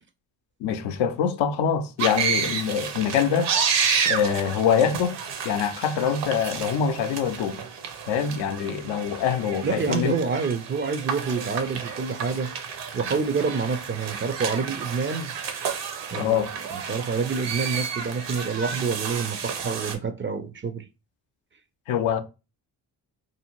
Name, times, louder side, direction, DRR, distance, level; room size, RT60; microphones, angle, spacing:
voice 1, 0.6-3.5 4.1-5.2 5.4-7.6 8.1-10.1 16.1-16.5 21.9-22.2, left 7 dB, 80° left, 0.5 m, -24 dB
sound 1, 2.0-20.0, right 6 dB, 65° right, 0.7 m, -31 dB
voice 2, 9.6-12.5 12.9-15.3 16.1-16.4 16.7-20.9, right 5 dB, 30° right, 0.4 m, -27 dB
2.6 x 2.0 x 2.9 m
supercardioid pair, 50°, 47 cm